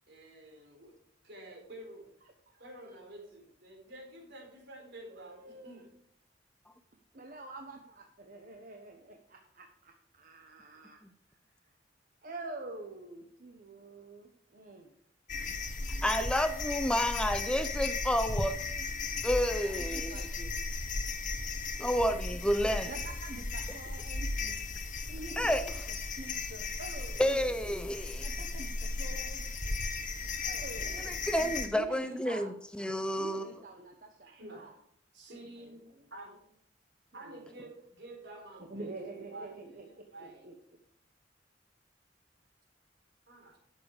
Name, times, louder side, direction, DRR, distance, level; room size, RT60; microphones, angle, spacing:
voice 1, 0.1-0.9 1.2-2.1 2.6-5.9 34.2-34.7 35.1-35.8 36.1-36.4 37.1-38.9 39.3-40.5 43.3-43.6, right 1 dB, 65° right, 1 dB, 3.8 m, -49 dB
voice 2, 2.2-2.7 5.1-5.8 7.1-11.0 12.2-14.9 15.8-16.1 19.6-20.6 22.3-22.4 22.8-24.7 25.1-27.4 28.2-29.8 30.4-32.6 33.1-34.8 35.4-35.7 37.2-37.7 38.7-40.5, right 2 dB, 50° right, 3 dB, 1.2 m, -47 dB
sound 1, 15.3-31.7, left 3 dB, 45° left, 1.3 m, -36 dB
voice 3, 16.0-18.6 19.2-20.3 21.8-22.9 25.4-25.6 27.2-28.3 31.1-33.5, equal, 5° left, 10 dB, 0.5 m, -30 dB
12.0 x 7.3 x 5.0 m, 0.71 s
head